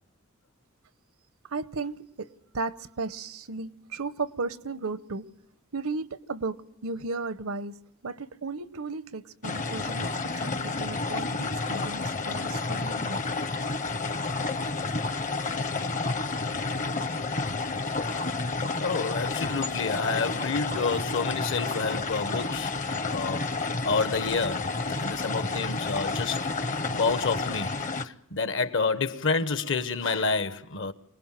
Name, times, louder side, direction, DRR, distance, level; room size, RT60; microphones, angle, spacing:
voice 1, 1.5-5.2 5.7-7.8 8.0-10.1 10.4-13.2, right 3 dB, 80° right, 0.9 m, -35 dB
sound 1, 9.4-28.1, left 3 dB, 35° left, 0.8 m, -30 dB
voice 2, 18.7-22.7 23.1-23.5 23.8-26.5 26.9-27.7 28.0-30.9, left 4 dB, 60° left, 1.1 m, -29 dB
25.5 x 19.0 x 7.5 m
head